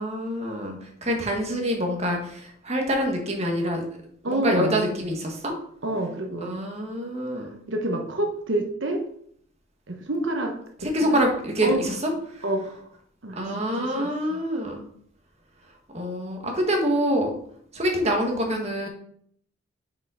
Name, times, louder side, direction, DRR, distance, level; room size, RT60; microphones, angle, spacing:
voice 1, 0.0-3.8 4.2-5.5 6.4-7.5 10.8-12.4 13.3-14.8 15.9-17.3 17.7-18.9, equal, 35° right, 2 dB, 1.6 m, -26 dB
voice 2, 4.2-4.9 5.8-6.5 7.7-9.0 9.9-10.5 10.8-11.2 11.6-11.8 12.4-12.8 13.2-14.4, right 1 dB, 65° right, 3 dB, 1.1 m, -28 dB
6.4 x 5.5 x 5.0 m, 0.65 s
head